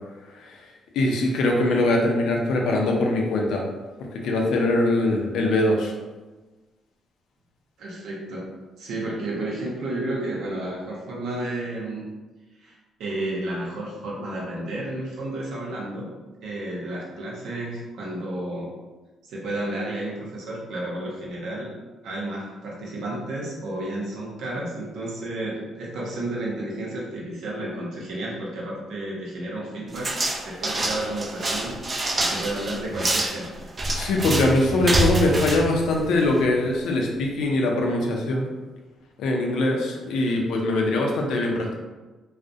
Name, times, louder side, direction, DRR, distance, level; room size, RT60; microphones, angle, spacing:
voice 1, 0.9-3.6 4.2-5.9 33.9-38.5 39.2-41.7, left 2 dB, 80° left, 0 dB, 0.5 m, -22 dB
voice 2, 7.8-8.5 8.8-12.1 12.6-12.7 13.0-16.1 16.4-18.7 19.2-21.7 22.0-30.1 30.5-31.8 32.2-33.5, right 1 dB, 80° right, -4 dB, 0.7 m, -31 dB
sound 1, 29.9-36.5, right 1 dB, 35° right, 0.4 m, -26 dB
2.4 x 2.0 x 2.6 m, 1.2 s
cardioid pair, 90°, 0 cm